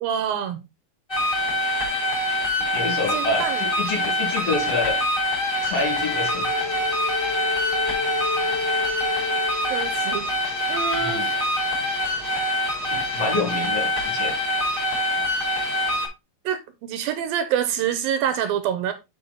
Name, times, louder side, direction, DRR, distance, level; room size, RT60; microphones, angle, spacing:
voice 1, 0.0-0.6 3.1-3.6 4.0-4.1 9.7-10.3 10.7-11.3 16.5-18.9, right 9 dB, 75° right, 2.4 m, -26 dB
sound 1, 1.1-16.1, left 1 dB, 10° left, 2.5 m, -25 dB
voice 2, 2.7-5.0 5.6-6.5 11.0-11.3 12.9-14.3, left 3 dB, 45° left, 2.6 m, -27 dB
Bowed string instrument, 5.8-10.2, left 4 dB, 75° left, 3.7 m, -31 dB
8.5 x 4.9 x 3.9 m
omnidirectional pair, 4.5 m